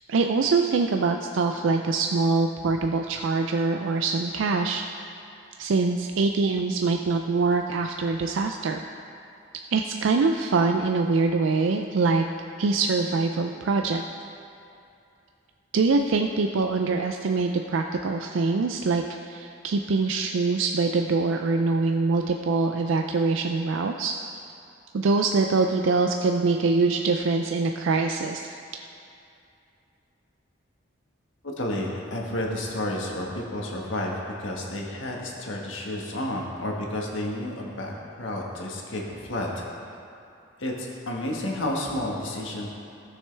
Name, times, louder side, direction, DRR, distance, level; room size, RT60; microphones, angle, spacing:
voice 1, 0.1-4.8 5.6-8.8 9.7-12.3 12.6-14.0 15.7-24.1 24.4-24.5 24.9-28.5, right 4 dB, 85° right, 4 dB, 0.4 m, -24 dB
voice 2, 31.6-34.1 34.4-39.6 40.6-42.7, left 1 dB, 85° left, -2 dB, 1.5 m, -31 dB
17.0 x 6.5 x 3.4 m, 2.6 s
head